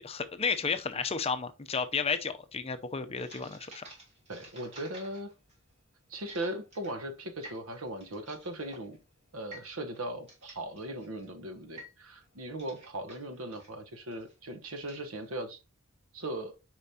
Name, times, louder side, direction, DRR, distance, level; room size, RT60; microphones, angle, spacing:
voice 1, 0.0-3.8, left 5 dB, 30° left, 0.6 m, -32 dB
sound 1, 3.2-15.4, right 1 dB, 30° right, 3.3 m, -53 dB
voice 2, 4.3-5.3 6.1-9.0 9.3-15.6 16.1-16.5, right 1 dB, 85° right, 1.1 m, -38 dB
6.9 x 5.1 x 2.8 m
head